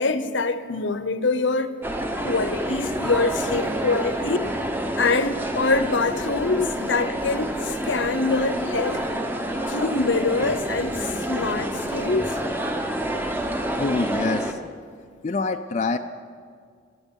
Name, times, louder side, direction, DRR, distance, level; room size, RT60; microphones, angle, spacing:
voice 1, 0.0-1.8 2.2-4.5 5.0-9.0 9.7-12.4, left 3 dB, 70° left, 0.8 m, -24 dB
sound 1, 1.8-14.5, right 1 dB, 10° right, 0.8 m, -28 dB
voice 2, 13.8-14.6 15.2-16.0, left 3 dB, 35° left, 0.4 m, -26 dB
20.5 x 13.0 x 5.3 m
head